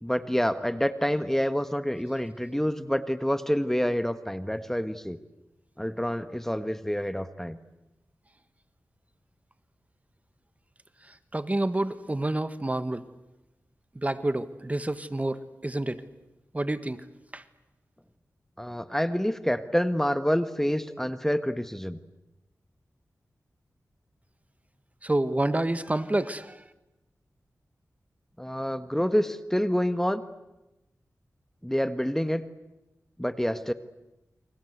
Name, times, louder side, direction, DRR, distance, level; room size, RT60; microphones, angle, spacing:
voice 1, 0.0-5.2 5.8-7.6 18.6-22.0 28.4-30.2 31.6-32.4 33.2-33.7, equal, 5° left, 11 dB, 1.5 m, -27 dB
voice 2, 11.0-13.1 13.9-16.0 16.5-17.1 17.3-17.4 25.0-26.6, right 1 dB, 25° right, 12 dB, 1.5 m, -29 dB
29.5 x 24.0 x 8.2 m, 0.98 s
cardioid pair, 50°, 6 cm